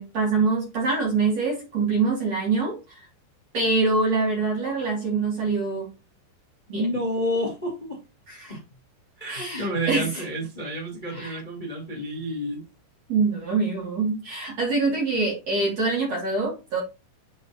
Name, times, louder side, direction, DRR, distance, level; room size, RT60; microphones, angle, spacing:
voice 1, 0.0-3.1 3.5-5.9 6.7-6.9 8.3-8.6 9.3-10.2 11.1-11.4 13.1-16.8, right 3 dB, 40° right, 3.3 m, -25 dB
voice 2, 6.7-8.0 8.5-8.6 9.2-12.6, equal, 10° left, 2.6 m, -29 dB
9.0 x 5.5 x 3.0 m
omnidirectional pair, 5.5 m